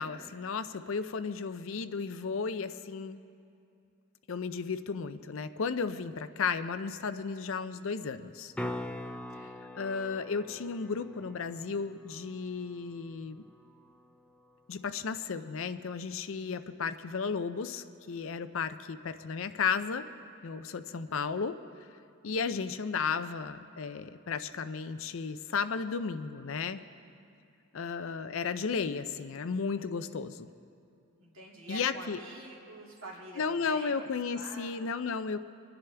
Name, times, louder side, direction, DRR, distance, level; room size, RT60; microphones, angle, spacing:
voice 1, 0.0-3.2 4.3-8.5 9.7-13.4 14.7-20.1 20.4-21.6 22.2-26.8 27.7-30.5 31.7-32.2 33.4-35.4, left 5 dB, 60° left, 11 dB, 0.5 m, -34 dB
sound 1, 8.5-14.6 19.3-19.4, left 1 dB, 5° left, 0.4 m, -43 dB
voice 2, 31.2-34.1 34.3-34.9, right 1 dB, 65° right, -3 dB, 2.4 m, -46 dB
25.5 x 10.5 x 3.4 m, 2.5 s
head